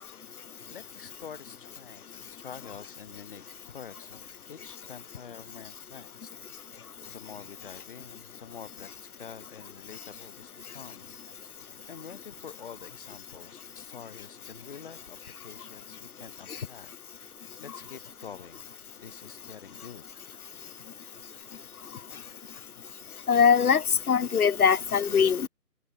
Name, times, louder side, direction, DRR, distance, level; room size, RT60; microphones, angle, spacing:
voice 1, 0.2-6.3 6.6-11.2 11.9-16.9 17.2-18.7 19.0-20.1, left 7 dB, 35° left, 7.5 m, -47 dB
voice 2, 23.3-25.5, left 7 dB, 65° left, 0.6 m, -22 dB
figure-of-eight pair, 150°, 48 cm